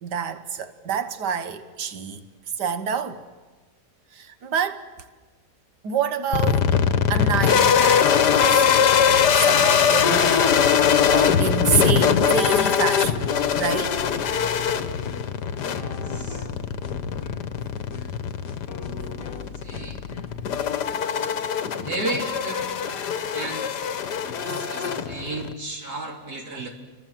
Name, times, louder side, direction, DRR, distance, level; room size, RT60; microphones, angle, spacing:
voice 1, 0.0-2.2 2.6-3.2 4.1-4.9 5.8-6.8 7.1-8.7 9.1-14.0 24.4-25.2 26.5-26.6, right 7 dB, 90° right, 1.8 m, -28 dB
sound 1, 6.3-25.5, left 7 dB, 85° left, 1.7 m, -22 dB
sound 2, 11.0-20.7, left 4 dB, 60° left, 2.1 m, -39 dB
voice 2, 15.7-16.5 19.6-20.0 20.9-21.4 21.8-26.7, right 2 dB, 65° right, 4.1 m, -35 dB
29.5 x 24.5 x 7.6 m
omnidirectional pair, 1.7 m